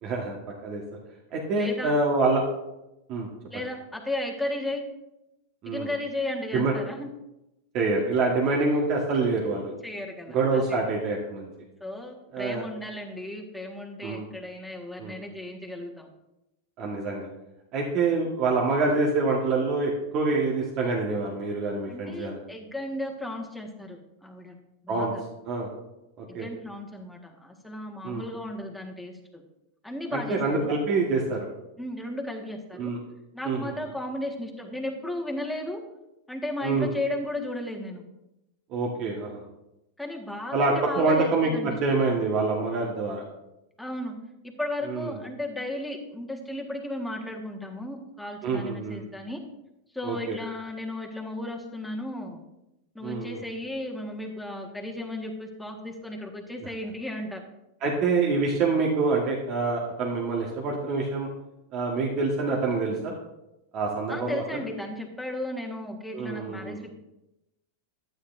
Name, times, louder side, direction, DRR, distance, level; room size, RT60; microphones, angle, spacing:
voice 1, 0.0-0.4 0.6-0.8 1.3-2.4 3.1-3.3 5.6-5.9 6.5-6.7 7.7-9.7 10.3-11.5 12.3-12.6 14.0-14.3 15.0-15.2 16.8-17.3 17.7-22.4 24.9-25.1 25.4-25.7 26.2-26.5 28.0-28.2 30.1-31.5 32.7-33.0 33.4-33.7 36.6-36.9 38.7-39.4 40.5-43.2 44.9-45.2 48.4-49.0 50.0-50.4 53.0-53.4 57.8-61.3 61.7-63.1 63.7-64.6 66.1-66.8, right 3 dB, 45° right, -2 dB, 1.6 m, -26 dB
voice 2, 1.5-1.9 3.5-4.8 5.6-7.1 9.8-10.8 11.8-16.1 18.0-18.2 21.9-24.6 24.8-25.2 26.3-29.4 29.8-30.7 31.8-32.9 33.3-35.8 36.3-38.1 40.0-41.8 43.8-44.2 44.4-49.4 49.9-52.4 52.9-57.4 64.1-66.9, left 1 dB, 5° left, 0 dB, 1.6 m, -35 dB
11.5 x 9.3 x 2.7 m, 0.93 s
hypercardioid pair, 105°, 0 cm